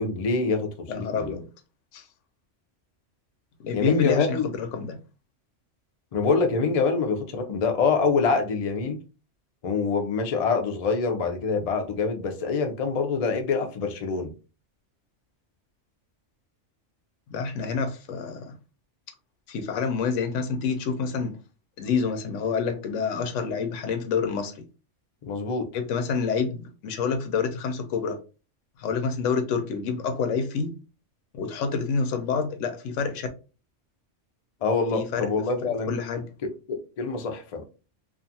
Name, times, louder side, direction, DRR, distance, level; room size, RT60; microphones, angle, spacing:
voice 1, 0.0-1.3 3.7-4.5 6.1-9.0 9.6-14.3 25.2-25.7 34.6-36.0 36.4-37.7, left 4 dB, 55° left, 0.4 m, -25 dB
voice 2, 0.9-1.5 1.9-2.0 3.6-5.0 17.3-18.5 19.5-21.4 21.8-24.6 25.7-28.2 28.8-30.7 31.3-33.3 34.9-35.3 35.6-36.2, left 5 dB, 90° left, 1.0 m, -28 dB
2.5 x 2.4 x 2.6 m
omnidirectional pair, 1.3 m